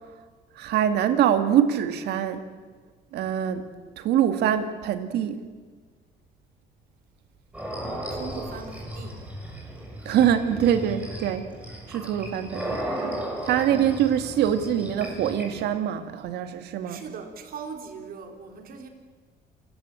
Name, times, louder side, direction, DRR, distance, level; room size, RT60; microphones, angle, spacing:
voice 1, 0.6-2.4 3.1-3.7 4.0-5.4 10.1-11.5 11.9-13.2 13.4-17.0, right 9 dB, 80° right, 9 dB, 2.3 m, -24 dB
sound 1, 7.5-15.6, right 1 dB, 10° right, 6.6 m, -35 dB
voice 2, 8.1-9.2 16.9-18.9, right 5 dB, 60° right, 6 dB, 3.9 m, -39 dB
27.5 x 16.5 x 9.0 m, 1.5 s
cardioid pair, 110°, 17 cm